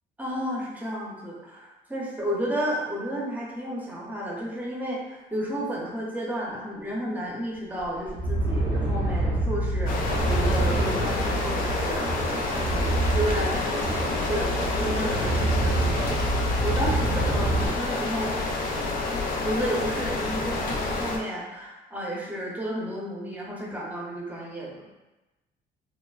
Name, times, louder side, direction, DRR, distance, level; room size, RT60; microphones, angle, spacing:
voice 1, 0.2-9.9 10.3-12.1 12.5-16.0 16.6-18.4 19.4-24.8, equal, 10° right, -4 dB, 0.6 m, -32 dB
sound 1, 7.3-7.4 7.8-17.7, right 1 dB, 80° right, 0.9 m, -26 dB
sound 2, 9.9-21.2, left 3 dB, 55° left, 0.4 m, -29 dB
3.0 x 2.0 x 2.3 m, 1.1 s
cardioid pair, 110°, 17 cm